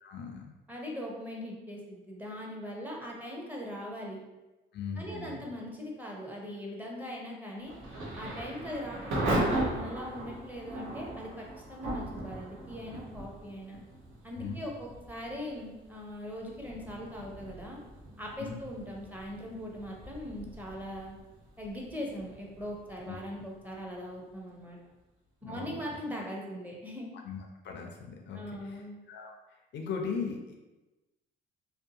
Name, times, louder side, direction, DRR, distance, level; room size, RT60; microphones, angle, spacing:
voice 1, 0.0-0.5 4.7-5.4 14.4-14.6 18.4-18.6 23.1-23.2 25.4-26.0 27.2-27.4 27.6-29.3 29.7-30.5, left 5 dB, 65° left, 2 dB, 0.4 m, -38 dB
voice 2, 0.7-4.2 5.0-7.7 8.2-13.8 14.2-17.8 18.2-21.2 21.6-24.8 25.4-27.1 28.3-29.0, equal, 10° right, -2 dB, 0.6 m, -40 dB
Thunder / Rain, 7.6-24.4, right 1 dB, 85° right, 0.9 m, -38 dB
2.6 x 2.1 x 2.7 m, 1.1 s
cardioid pair, 90°, 20 cm